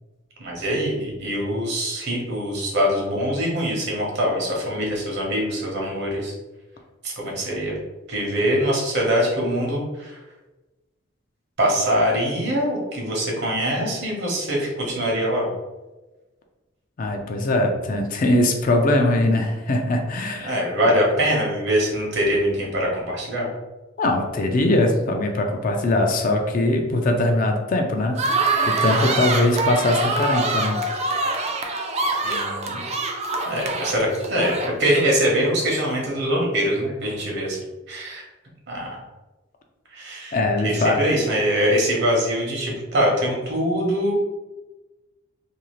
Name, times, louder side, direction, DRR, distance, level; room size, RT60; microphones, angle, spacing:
voice 1, 0.4-6.3 7.0-7.7 8.1-10.2 11.6-15.5 20.4-23.5 32.2-32.8 33.5-37.6 37.9-38.2 38.7-39.0 39.9-40.4 40.6-44.1, equal, 60° right, -2 dB, 0.9 m, -23 dB
voice 2, 17.0-20.6 24.0-30.8 40.3-41.0, left 1 dB, 45° left, 3 dB, 0.4 m, -21 dB
sound 1, 28.1-35.1, right 3 dB, 35° right, 0.3 m, -25 dB
2.6 x 2.4 x 3.0 m, 1.1 s
head